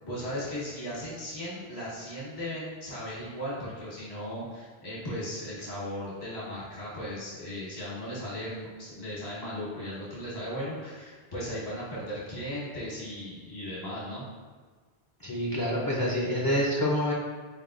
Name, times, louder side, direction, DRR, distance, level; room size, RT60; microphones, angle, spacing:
voice 1, 0.0-14.3, equal, 85° left, -7 dB, 1.6 m, -37 dB
voice 2, 15.2-17.1, equal, 40° left, -4 dB, 0.3 m, -27 dB
4.3 x 3.5 x 2.4 m, 1.4 s
omnidirectional pair, 1.0 m